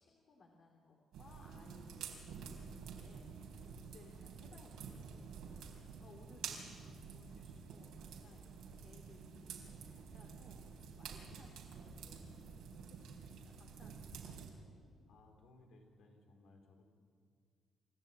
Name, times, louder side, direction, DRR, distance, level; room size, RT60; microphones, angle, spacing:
voice 1, 0.0-14.5, left 3 dB, 60° left, 0 dB, 3.1 m, -63 dB
sound 1, 1.1-14.5, right 6 dB, 85° right, 4.1 m, -50 dB
voice 2, 6.8-7.4 11.7-12.1 15.1-16.8, left 3 dB, 80° left, 2 dB, 4.2 m, -64 dB
28.5 x 13.5 x 8.9 m, 2.2 s
cardioid pair, 90°, 0 cm